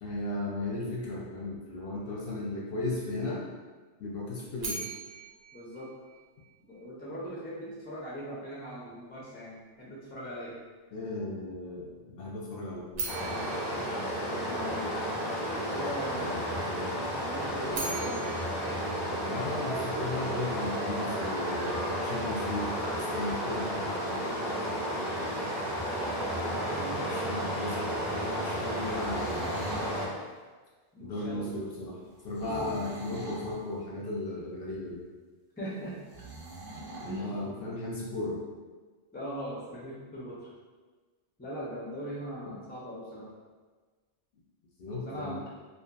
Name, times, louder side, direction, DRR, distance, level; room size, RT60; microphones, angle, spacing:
voice 1, 0.0-3.4 4.0-4.8 10.9-13.5 16.1-16.9 17.5-17.8 19.2-23.9 27.0-29.7 31.0-32.0 32.2-35.0 37.0-38.4 42.4-42.5 44.8-45.4, left 2 dB, 65° left, -5 dB, 0.7 m, -36 dB
sound 1, 4.6-6.7 12.9-15.1 17.5-19.9, right 4 dB, 85° right, 0.9 m, -41 dB
voice 2, 5.5-5.9 6.7-10.6 14.5-14.9 15.5-16.5 16.9-18.4 24.6-25.0 26.0-27.5 30.9-31.6 32.4-32.7 35.6-36.0 37.0-37.6 39.1-40.5 41.4-43.3 45.1-45.4, equal, 15° left, -6 dB, 0.3 m, -40 dB
Stream, 13.1-30.1, equal, ahead, 0.7 m, -32 dB
sound 2, 28.8-30.0 32.3-33.6 36.1-37.2, right 2 dB, 60° right, 0.7 m, -42 dB
2.6 x 2.4 x 2.3 m, 1.4 s
omnidirectional pair, 1.2 m